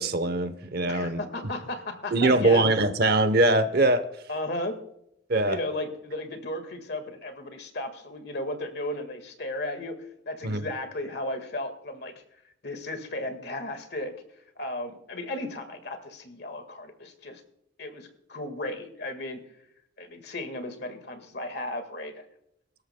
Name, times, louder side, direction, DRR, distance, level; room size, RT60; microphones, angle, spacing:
voice 1, 0.0-1.2 2.1-4.0 5.3-5.6 10.4-10.6, right 2 dB, 50° right, 12 dB, 0.8 m, -22 dB
voice 2, 0.9-2.7 4.3-4.8 5.5-10.0 10.3-12.1 12.6-14.1 14.6-17.4 17.8-19.4 20.0-22.2, left 1 dB, 55° left, 7 dB, 1.7 m, -35 dB
22.5 x 13.0 x 2.2 m, 0.76 s
head